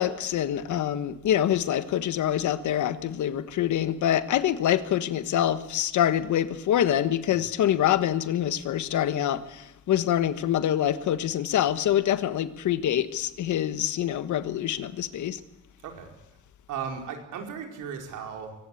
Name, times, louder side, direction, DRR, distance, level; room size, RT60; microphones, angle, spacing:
voice 1, 0.0-15.4, left 11 dB, 75° left, 1.4 m, -25 dB
voice 2, 15.8-16.1 16.7-18.5, right 7 dB, 90° right, 4.8 m, -36 dB
23.5 x 18.5 x 8.6 m
cardioid pair, 90°, 30 cm